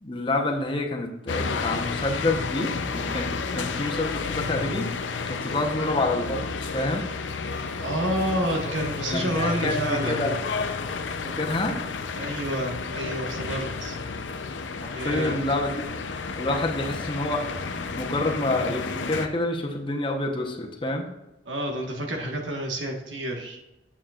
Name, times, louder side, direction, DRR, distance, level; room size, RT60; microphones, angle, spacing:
voice 1, 0.0-4.9 5.3-7.1 9.1-10.4 11.4-11.8 15.0-15.8 16.4-17.4 17.9-21.0, left 2 dB, 25° left, 2 dB, 1.0 m, -28 dB
sound 1, 1.3-19.3, left 4 dB, 90° left, 0.6 m, -31 dB
voice 2, 7.6-10.2 12.2-14.0 14.9-15.4 21.4-23.6, right 1 dB, 85° right, 1 dB, 1.5 m, -29 dB
8.9 x 7.4 x 2.5 m, 0.96 s
head